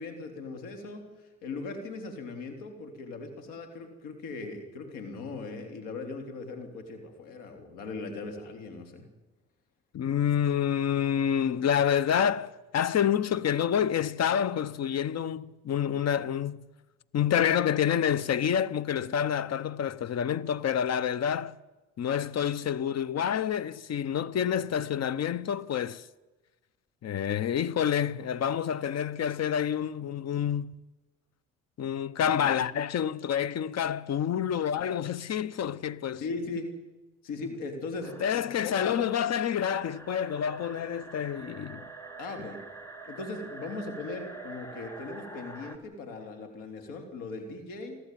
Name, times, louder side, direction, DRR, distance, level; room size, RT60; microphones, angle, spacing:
voice 1, 0.0-9.1 36.2-36.7 37.2-39.1 42.2-42.6 43.0-48.0, left 3 dB, 85° left, 3.6 m, -39 dB
voice 2, 9.9-16.6 17.1-21.5 22.0-26.0 27.0-30.7 31.8-36.2 38.2-41.9, left 9 dB, 55° left, 0.9 m, -28 dB
sound 1, 38.0-45.8, right 3 dB, 10° left, 3.2 m, -46 dB
29.0 x 12.0 x 9.3 m
supercardioid pair, 60°, 32 cm